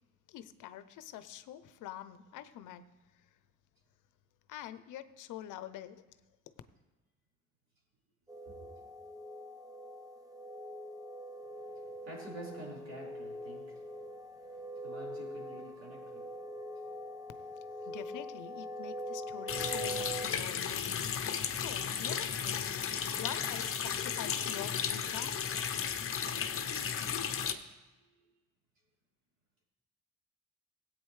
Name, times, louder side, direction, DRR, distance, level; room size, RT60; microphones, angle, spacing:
voice 1, 0.3-2.9 4.5-6.0 17.9-22.6 23.1-25.4, left 11 dB, 85° left, 12 dB, 0.6 m, -46 dB
sound 1, 8.3-20.3, equal, 10° right, 0.9 m, -43 dB
voice 2, 11.5-16.5 16.9-17.1 28.0-28.3, right 1 dB, 60° right, -4 dB, 4.3 m, -50 dB
Water tap faucet, 19.5-27.5, left 7 dB, 45° left, 0.8 m, -34 dB
16.5 x 8.4 x 3.2 m, 1.2 s
cardioid pair, 90°, 30 cm